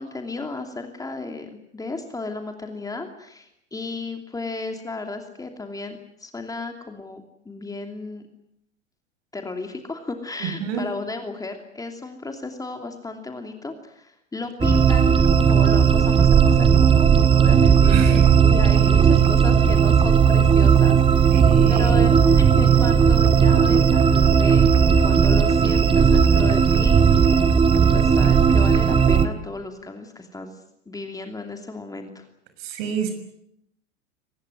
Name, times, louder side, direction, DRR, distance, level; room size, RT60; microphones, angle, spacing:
voice 1, 0.0-8.3 9.3-21.4 21.7-30.5 30.9-32.3, left 3 dB, 10° left, 5 dB, 2.9 m, -34 dB
voice 2, 10.4-10.8 17.8-18.2 18.8-19.3 21.3-22.2 32.6-33.1, right 6 dB, 50° right, 9 dB, 6.2 m, -29 dB
sound 1, 14.6-29.3, right 7 dB, 15° right, 1.7 m, -16 dB
24.0 x 20.0 x 9.6 m, 0.75 s
figure-of-eight pair, 90°, 36 cm